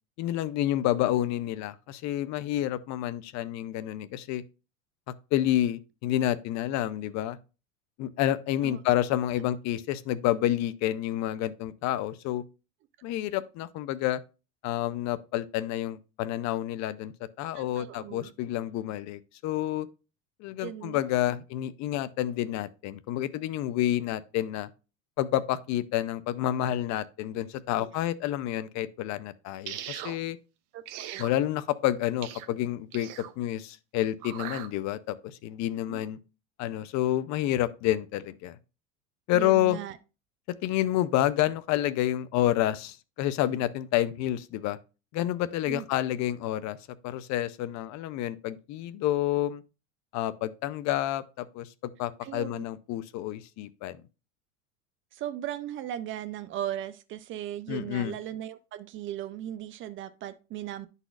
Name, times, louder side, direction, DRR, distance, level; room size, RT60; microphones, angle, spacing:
voice 1, 0.2-4.4 5.3-7.4 8.0-12.4 13.0-14.2 14.6-17.1 17.4-19.9 20.4-24.7 25.2-30.4 31.2-33.1 33.4-36.2 36.6-38.6 39.3-39.8 40.6-44.8 45.1-46.8 47.0-49.6 50.1-51.7 52.0-54.0 57.7-58.1, left 13 dB, 45° left, 0.6 m, -29 dB
voice 2, 17.5-18.3 20.6-21.4 27.8-28.0 30.7-31.3 35.9-36.1 39.3-40.0 45.7-45.9 52.2-52.6 55.1-60.9, right 11 dB, 35° right, 0.4 m, -38 dB
sound 1, 29.7-30.2 30.9-31.3 32.2-32.5 32.9-33.3 34.2-34.7, right 12 dB, 55° right, 0.8 m, -39 dB
11.0 x 4.1 x 2.4 m
supercardioid pair, 110°, 39 cm